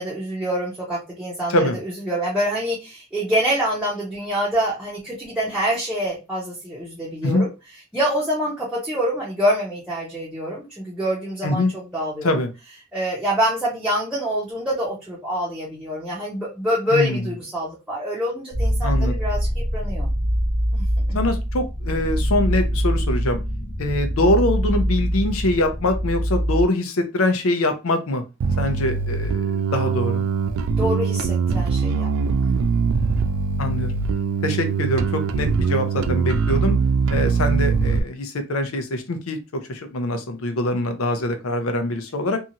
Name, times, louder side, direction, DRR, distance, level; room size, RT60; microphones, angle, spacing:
voice 1, 0.0-7.5 7.9-12.4 12.9-20.1 20.7-21.2 30.8-32.3 42.3-42.4, equal, 5° right, -7 dB, 0.7 m, -26 dB
voice 2, 16.9-17.2 18.8-19.2 21.1-23.4 23.8-28.2 28.6-30.2 33.6-33.9 34.4-36.8 37.1-42.4, left 1 dB, 80° left, 7 dB, 0.6 m, -23 dB
sound 1, 18.5-26.6, equal, 35° left, 0.6 m, -23 dB
Bass guitar, 28.4-38.0, right 5 dB, 75° right, 0.3 m, -22 dB
2.7 x 2.4 x 2.7 m, 0.27 s
head